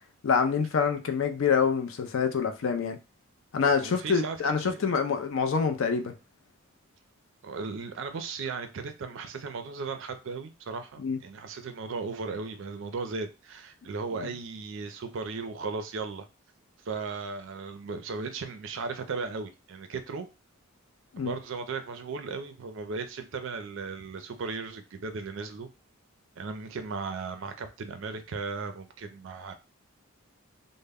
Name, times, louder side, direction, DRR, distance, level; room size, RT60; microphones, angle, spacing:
voice 1, 0.2-3.0 3.5-6.1 11.0-11.2 14.2-14.3 21.1-21.4, left 6 dB, 65° left, 0.4 m, -26 dB
voice 2, 3.8-4.4 4.6-5.0 7.4-16.3 16.8-20.3 21.2-25.7 26.4-29.5, right 4 dB, 60° right, 0.4 m, -36 dB
2.1 x 2.0 x 3.4 m
head